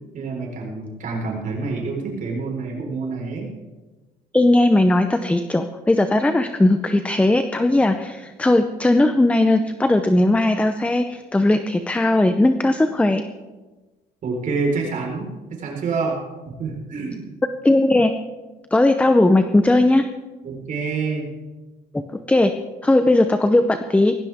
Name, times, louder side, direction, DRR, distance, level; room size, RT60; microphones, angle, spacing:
voice 1, 0.1-3.5 14.2-17.3 20.4-21.3, right 4 dB, 50° right, 0 dB, 4.5 m, -27 dB
voice 2, 4.3-13.2 17.6-18.1 18.7-20.0 22.3-22.5 22.8-24.2, left 2 dB, 5° left, 9 dB, 0.7 m, -18 dB
18.0 x 15.5 x 3.6 m, 1.2 s
cardioid pair, 110°, 17 cm